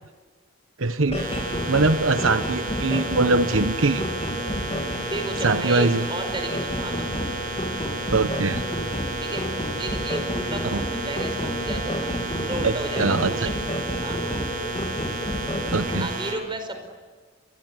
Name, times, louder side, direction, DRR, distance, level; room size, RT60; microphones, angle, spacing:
voice 1, 0.8-1.3 1.7-4.0 5.4-6.1 8.1-8.6 10.7-10.8 12.6-13.3 15.7-16.1, right 3 dB, 80° right, 10 dB, 1.1 m, -22 dB
sound 1, 1.1-16.1, equal, 30° left, 2.9 m, -30 dB
sound 2, 1.1-16.3, right 3 dB, 45° right, 6.9 m, -33 dB
voice 2, 5.1-7.1 9.2-9.4 9.7-12.1 12.4-13.6 14.0-14.2 16.0-16.9, right 2 dB, 25° right, 7 dB, 5.0 m, -33 dB
28.5 x 23.0 x 8.3 m, 1.4 s
head